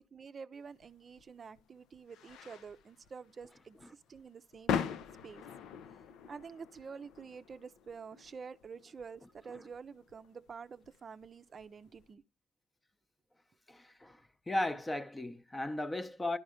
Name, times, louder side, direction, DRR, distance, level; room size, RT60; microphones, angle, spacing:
voice 1, 0.1-4.8 5.2-5.4 5.9-6.0 6.3-12.2, right 5 dB, 45° right, 0.5 m, -48 dB
sound 1, 0.8-12.1, left 7 dB, 85° left, 0.6 m, -43 dB
voice 2, 13.7-14.2 14.5-16.4, left 1 dB, 15° left, 0.7 m, -36 dB
11.5 x 4.2 x 4.9 m
cardioid pair, 90°, 0 cm